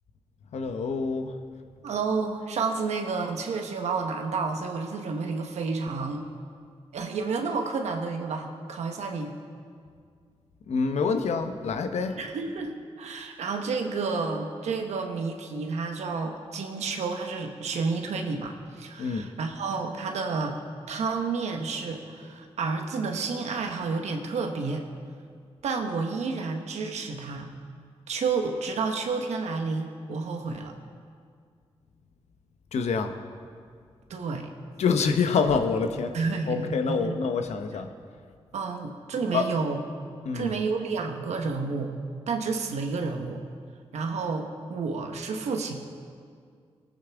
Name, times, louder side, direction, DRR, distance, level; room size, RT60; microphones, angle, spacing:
voice 1, 0.5-1.3 10.7-12.2 19.0-19.3 32.7-33.1 34.8-36.1 36.5-37.9 39.3-39.5 40.2-40.6, left 5 dB, 85° left, 6 dB, 0.8 m, -26 dB
voice 2, 1.8-6.2 6.9-9.4 12.2-20.6 20.9-24.8 25.6-27.5 28.1-30.7 34.1-34.5 36.1-37.2 38.5-39.8 40.3-41.9 42.3-43.4 43.9-45.8, right 4 dB, 90° right, 4 dB, 1.1 m, -30 dB
19.0 x 8.7 x 3.5 m, 2.1 s
cardioid pair, 55°, 11 cm